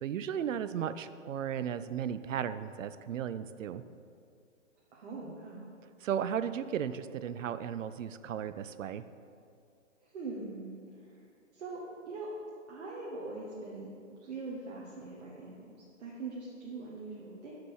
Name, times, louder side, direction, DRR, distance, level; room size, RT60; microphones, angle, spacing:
voice 1, 0.0-3.8 6.0-9.0, right 9 dB, 80° right, 13 dB, 0.5 m, -35 dB
voice 2, 4.9-5.7 10.0-10.7 11.0-11.2 11.5-12.3 12.7-13.9 14.2-17.5, right 3 dB, 60° right, -5 dB, 1.4 m, -42 dB
5.8 x 4.7 x 6.5 m, 2.4 s
hypercardioid pair, 125°, 38 cm